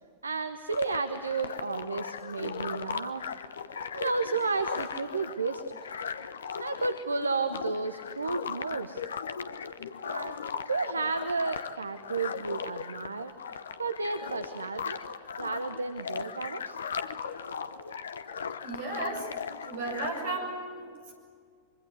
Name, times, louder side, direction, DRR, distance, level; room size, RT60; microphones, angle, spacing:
voice 1, 0.2-3.2 3.9-5.6 6.6-9.0 10.0-10.4 10.7-13.3 13.8-15.0 15.4-16.8, right 4 dB, 75° right, 10 dB, 0.9 m, -32 dB
sound 1, 0.7-20.3, left 6 dB, 70° left, 0.9 m, -38 dB
voice 2, 18.6-19.3 19.6-20.8, right 2 dB, 55° right, 3 dB, 7.1 m, -34 dB
25.0 x 24.0 x 8.0 m, 2.1 s
figure-of-eight pair, 90°, 0 cm